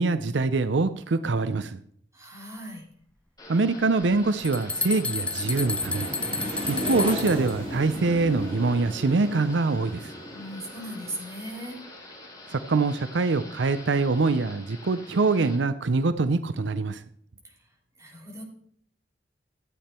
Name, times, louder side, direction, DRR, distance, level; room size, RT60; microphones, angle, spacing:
voice 1, 0.0-1.8 3.5-6.1 6.7-10.1 12.5-17.0, right 3 dB, 80° right, 12 dB, 0.6 m, -24 dB
voice 2, 2.1-2.8 10.3-11.8 17.4-17.7 18.0-18.4, right 1 dB, 15° right, -1 dB, 3.3 m, -38 dB
Thunder / Rain, 3.4-15.6, left 1 dB, 20° left, 3.9 m, -44 dB
sound 1, 4.0-4.1 4.4-7.5, left 3 dB, 5° left, 0.4 m, -31 dB
sound 2, 4.7-11.2, right 1 dB, 30° right, 3.1 m, -36 dB
13.0 x 8.8 x 4.4 m, 0.64 s
head